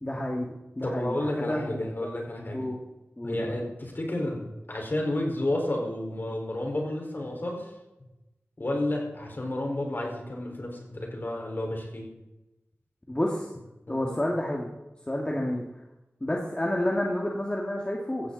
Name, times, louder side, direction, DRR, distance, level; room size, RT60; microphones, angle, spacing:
voice 1, 0.0-1.8 2.5-2.8 3.2-3.6 13.1-13.5 13.9-14.7 15.1-15.7 16.2-18.3, left 1 dB, 20° left, -2 dB, 2.2 m, -30 dB
voice 2, 0.8-2.7 3.2-7.7 8.6-12.1 13.9-14.2 15.3-15.4, left 1 dB, 45° left, 1 dB, 5.0 m, -31 dB
16.5 x 14.5 x 4.2 m, 0.98 s
wide cardioid pair, 70°, 5 cm